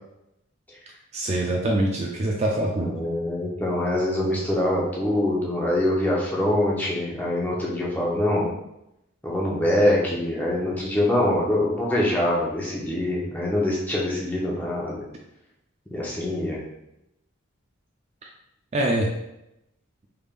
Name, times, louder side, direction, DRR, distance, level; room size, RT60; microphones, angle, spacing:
voice 1, 1.1-2.9 18.7-19.1, right 1 dB, 30° right, 0 dB, 0.3 m, -24 dB
voice 2, 2.8-8.5 9.2-15.0 15.9-16.6, left 1 dB, 10° left, -5 dB, 0.7 m, -24 dB
3.4 x 3.4 x 2.4 m, 0.85 s
head